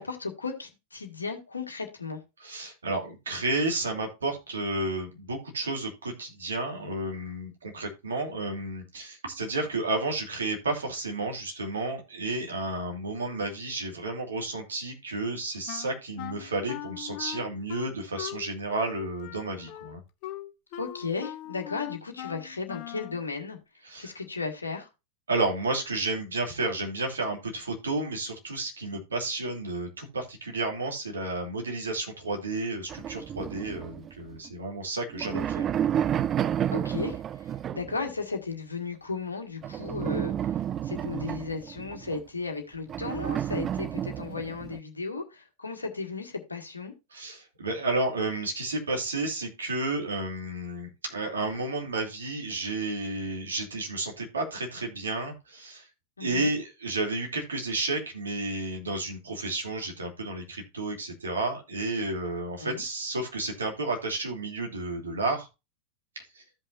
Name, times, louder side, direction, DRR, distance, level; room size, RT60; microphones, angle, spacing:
voice 1, 0.0-2.2 20.8-23.6 24.0-24.9 36.7-46.9 56.2-56.5 62.6-62.8, left 4 dB, 80° left, 1.7 m, -35 dB
voice 2, 2.4-20.0 23.8-24.1 25.3-35.7 47.1-55.9 56.2-65.5 66.3-66.4, right 2 dB, 70° right, 2.8 m, -31 dB
Wind instrument woodwind instrument, 15.7-23.2, left 13 dB, 45° left, 0.8 m, -41 dB
sound 1, 32.9-34.5 35.0-38.1 39.6-42.2 42.9-44.8, right 10 dB, 25° right, 0.3 m, -31 dB
15.0 x 5.5 x 2.6 m
figure-of-eight pair, 90°, 0 cm